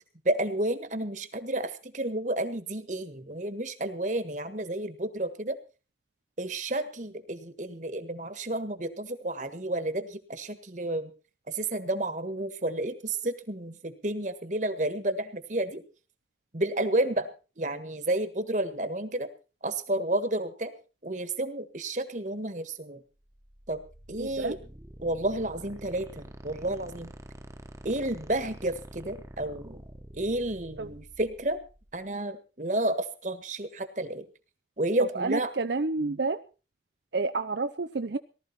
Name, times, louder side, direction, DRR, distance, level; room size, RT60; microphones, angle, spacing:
voice 1, 0.2-5.6 6.4-11.1 11.5-15.8 16.5-17.3 17.6-19.3 19.6-20.7 21.0-23.0 23.7-23.8 24.1-24.5 25.0-27.1 27.8-29.8 30.1-31.6 31.9-34.2 34.8-35.5, right 1 dB, 45° right, 11 dB, 1.6 m, -31 dB
sound 1, 23.2-32.1, right 1 dB, 15° right, 1.2 m, -47 dB
voice 2, 24.2-24.6 30.8-30.9 35.1-36.4 37.1-38.2, right 3 dB, 75° right, 9 dB, 0.7 m, -29 dB
19.0 x 13.0 x 4.3 m, 0.35 s
head